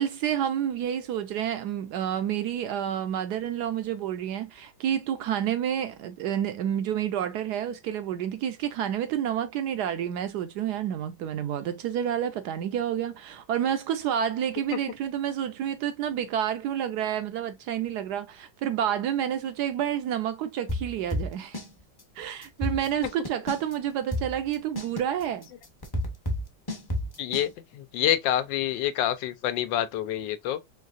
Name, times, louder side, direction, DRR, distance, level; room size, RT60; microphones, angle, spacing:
voice 1, 0.0-21.6 22.2-25.5, right 10 dB, 70° right, 1.0 m, -29 dB
sound 1, 20.7-21.7 22.0-22.1 22.4-23.7 24.1-27.5, left 1 dB, 20° left, 0.5 m, -30 dB
voice 2, 27.2-30.6, left 12 dB, 80° left, 1.3 m, -27 dB
4.6 x 3.1 x 2.4 m
omnidirectional pair, 2.0 m